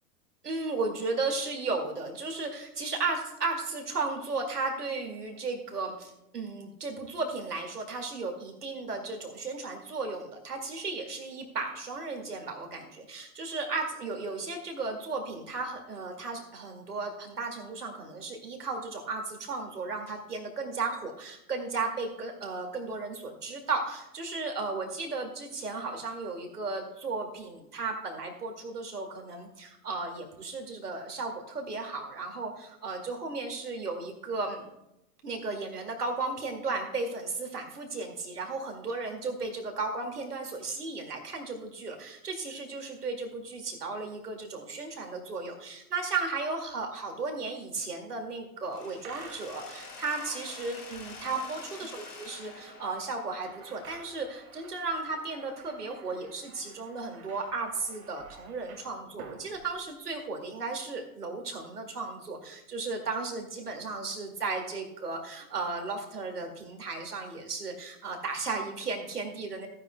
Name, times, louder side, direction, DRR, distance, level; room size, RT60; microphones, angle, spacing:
voice 1, 0.4-34.7 35.2-69.7, right 3 dB, 85° right, 2 dB, 2.3 m, -35 dB
Mechanisms, 48.7-54.6, left 4 dB, 85° left, 2.1 m, -47 dB
sound 1, 49.0-60.2, right 4 dB, 65° right, 2.0 m, -52 dB
15.0 x 9.9 x 2.2 m, 0.85 s
hypercardioid pair, 105°, 45 cm